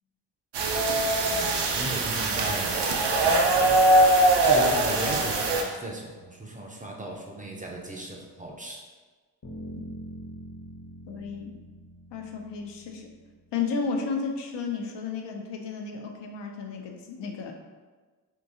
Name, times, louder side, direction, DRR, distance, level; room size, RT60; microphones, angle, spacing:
sound 1, 0.5-5.6, right 2 dB, 75° right, 0.6 m, -22 dB
voice 1, 1.2-2.8 3.1-3.8 4.3-8.9, right 1 dB, 20° right, 0 dB, 0.4 m, -37 dB
sound 2, 9.4-13.4, right 1 dB, 55° left, 0.9 m, -43 dB
voice 2, 11.1-11.6 12.1-13.1 13.5-17.5, left 5 dB, 80° left, 2 dB, 0.6 m, -33 dB
3.6 x 2.7 x 2.7 m, 1.3 s
cardioid pair, 80°, 42 cm